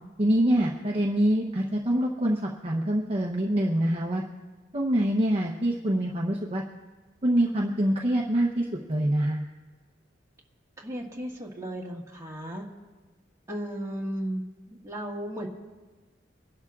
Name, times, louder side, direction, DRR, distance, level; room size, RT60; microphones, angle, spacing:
voice 1, 0.2-4.2 4.7-6.6 7.2-9.4, right 1 dB, 30° right, -1 dB, 0.8 m, -25 dB
voice 2, 10.8-12.6 13.5-15.5, equal, 15° right, -2 dB, 1.7 m, -35 dB
24.5 x 11.5 x 2.4 m, 1.3 s
head